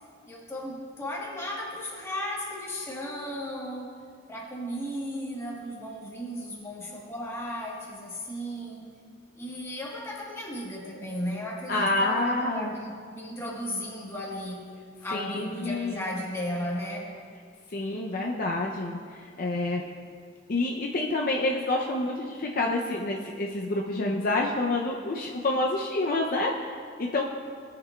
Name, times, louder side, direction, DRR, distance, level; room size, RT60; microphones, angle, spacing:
voice 1, 0.3-3.9 4.3-8.9 9.3-14.7 15.0-17.1, equal, 15° left, -3 dB, 1.2 m, -35 dB
voice 2, 11.7-12.7 15.1-16.1 17.7-19.9 20.5-27.3, left 2 dB, 45° left, 0 dB, 0.5 m, -28 dB
16.5 x 5.8 x 2.3 m, 2.1 s
head